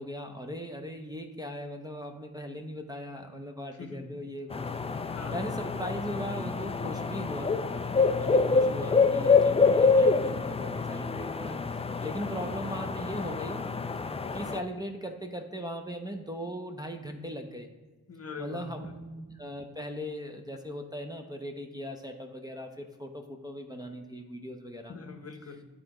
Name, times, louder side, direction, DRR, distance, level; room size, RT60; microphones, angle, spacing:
voice 1, 0.0-4.7 5.3-7.5 8.1-13.6 14.3-17.7 18.4-24.9, equal, 10° right, 2 dB, 0.7 m, -39 dB
voice 2, 3.7-4.2 5.1-5.5 9.5-9.8 18.1-18.9 24.9-25.6, left 4 dB, 40° left, 6 dB, 0.9 m, -43 dB
sound 1, 4.5-14.6, left 4 dB, 15° left, 0.3 m, -26 dB
9.5 x 3.7 x 3.0 m, 1.3 s
supercardioid pair, 45°, 38 cm